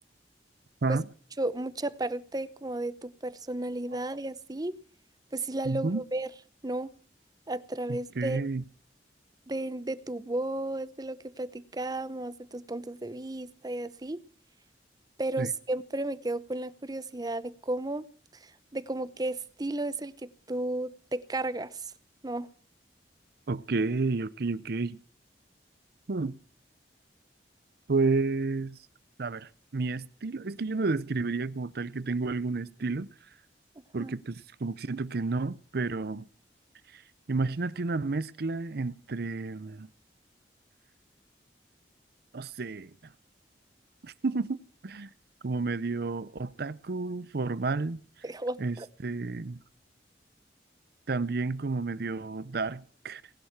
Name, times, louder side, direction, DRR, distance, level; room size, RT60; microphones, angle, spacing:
voice 1, 1.4-4.8 5.3-6.3 6.6-6.9 7.5-8.4 9.5-14.2 15.2-18.0 18.4-21.9 22.2-22.5 34.0-34.2 48.2-48.9, right 2 dB, 20° right, 0.8 m, -33 dB
voice 2, 5.6-6.0 7.9-8.6 15.4-15.5 23.5-25.0 26.1-26.4 27.9-28.8 29.2-33.1 33.9-36.3 36.9-37.0 37.3-39.9 42.3-42.9 44.0-45.1 45.4-48.0 48.6-49.6 51.1-53.2, right 3 dB, 60° right, 0.6 m, -31 dB
19.0 x 11.5 x 5.9 m
head